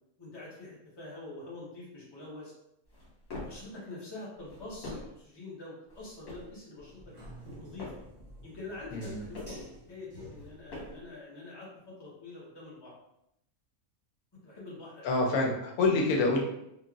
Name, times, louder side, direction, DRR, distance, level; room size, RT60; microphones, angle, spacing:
voice 1, 0.2-2.5 3.3-7.0 7.5-7.9 8.4-12.9 14.4-15.1, left 2 dB, 20° left, -6 dB, 0.7 m, -45 dB
sound 1, 2.8-3.7 4.3-5.2 5.9-6.6 7.3-8.1 8.8-9.7 10.3-11.1, left 2 dB, 70° left, 1.4 m, -45 dB
sound 2, 6.8-10.8, right 1 dB, 30° right, 0.6 m, -49 dB
voice 2, 8.9-9.2 15.0-16.4, left 3 dB, 90° left, 0 dB, 1.1 m, -27 dB
3.1 x 2.4 x 2.3 m, 0.81 s
omnidirectional pair, 1.5 m